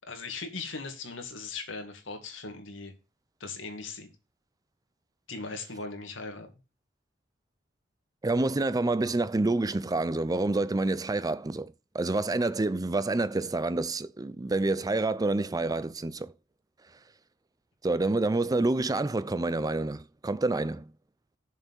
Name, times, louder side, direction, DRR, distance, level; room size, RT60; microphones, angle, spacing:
voice 1, 0.1-2.9 3.4-4.1 5.3-6.5, left 4 dB, 85° left, 2.2 m, -39 dB
voice 2, 8.2-16.3 17.8-20.9, right 2 dB, 20° right, 0.5 m, -28 dB
7.2 x 5.7 x 7.5 m
head